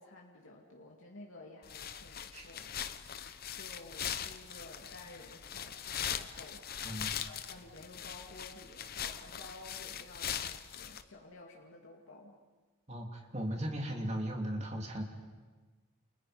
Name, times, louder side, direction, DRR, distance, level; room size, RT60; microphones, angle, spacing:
voice 1, 0.0-2.8 3.5-12.4, left 2 dB, 70° left, -1 dB, 2.4 m, -53 dB
sound 1, 1.6-11.0, left 9 dB, 45° left, 0.9 m, -41 dB
voice 2, 12.9-15.0, equal, 30° right, 1 dB, 3.0 m, -37 dB
30.0 x 29.0 x 5.2 m, 1.4 s
head